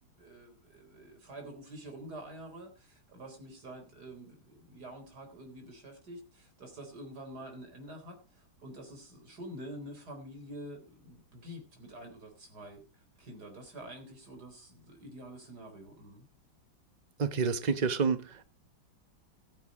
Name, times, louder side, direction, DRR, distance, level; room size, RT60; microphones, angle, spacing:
voice 1, 0.1-16.3, right 1 dB, 50° right, 4.5 m, -47 dB
voice 2, 17.2-18.5, right 5 dB, 30° right, 0.9 m, -29 dB
14.0 x 9.2 x 4.9 m
omnidirectional pair, 2.2 m